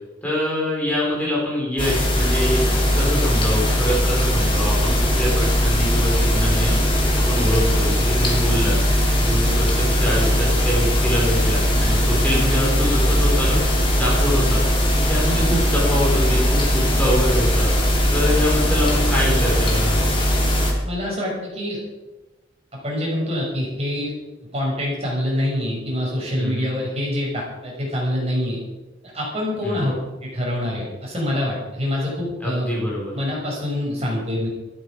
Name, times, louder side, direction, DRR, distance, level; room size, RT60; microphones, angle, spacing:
voice 1, 0.2-2.6 2.9-6.7 7.2-8.8 9.2-13.6 14.0-14.6 15.1-17.7 18.1-20.1 26.4-26.7 29.6-29.9 32.4-33.1, equal, 10° left, -5 dB, 5.3 m, -25 dB
sound 1, 1.8-20.7, equal, 25° left, 3.7 m, -19 dB
voice 2, 20.8-21.8 22.7-24.1 24.5-28.6 29.1-30.0 30.2-32.7 33.1-34.5, left 1 dB, 30° right, -3 dB, 6.4 m, -25 dB
15.0 x 14.0 x 5.2 m, 1.1 s
head